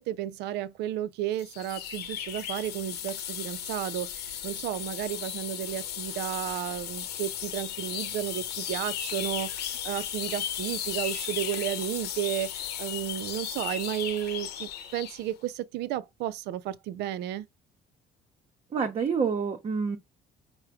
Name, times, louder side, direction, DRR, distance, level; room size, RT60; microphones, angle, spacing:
voice 1, 0.0-17.5, right 12 dB, 80° right, 0.5 m, -33 dB
sound 1, 1.4-15.2, left 10 dB, 75° left, 0.8 m, -35 dB
voice 2, 18.7-20.0, right 6 dB, 40° right, 0.8 m, -27 dB
4.8 x 2.2 x 4.6 m
cardioid pair, 110°, 17 cm